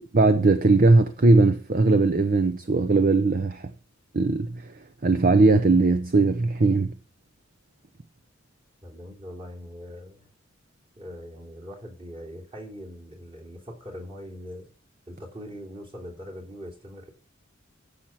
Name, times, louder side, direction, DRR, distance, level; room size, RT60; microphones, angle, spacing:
voice 1, 0.1-3.7 4.1-4.7 5.0-6.9, right 3 dB, 45° right, 0.8 m, -19 dB
voice 2, 8.8-10.3 11.0-14.7 15.1-17.1, equal, 25° right, 3.3 m, -41 dB
11.5 x 7.4 x 6.0 m
head